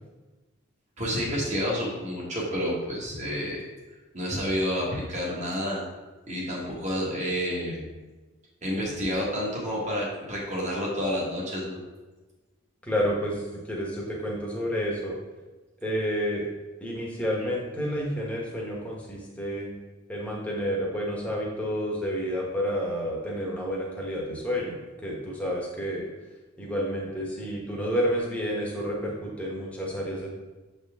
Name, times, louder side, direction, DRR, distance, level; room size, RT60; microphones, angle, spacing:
voice 1, 1.0-3.6 4.1-5.8 6.3-7.8 8.6-11.8, equal, 35° right, -4 dB, 1.5 m, -29 dB
voice 2, 12.8-15.2 15.8-16.5 16.8-19.7 20.1-26.1 26.6-30.3, equal, 5° left, -4 dB, 1.2 m, -30 dB
7.3 x 4.2 x 3.6 m, 1.2 s
head